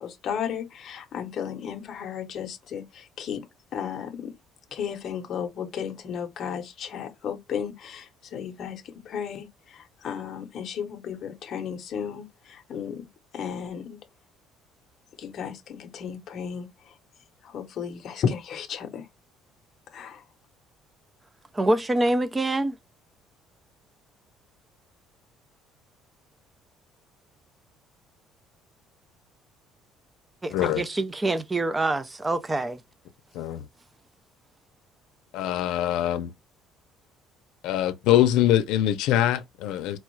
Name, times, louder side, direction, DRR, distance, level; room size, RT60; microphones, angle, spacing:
voice 1, 0.0-4.3 4.7-13.0 13.3-14.0 15.2-17.0 17.4-19.1 19.9-20.2, left 7 dB, 40° left, 0.7 m, -34 dB
voice 2, 21.5-22.8 30.4-32.8, right 2 dB, 10° right, 0.3 m, -25 dB
voice 3, 30.5-30.8 33.3-33.6 35.3-36.3 37.6-40.0, left 12 dB, 75° left, 0.6 m, -23 dB
4.3 x 2.4 x 3.1 m
cardioid pair, 170°, 0 cm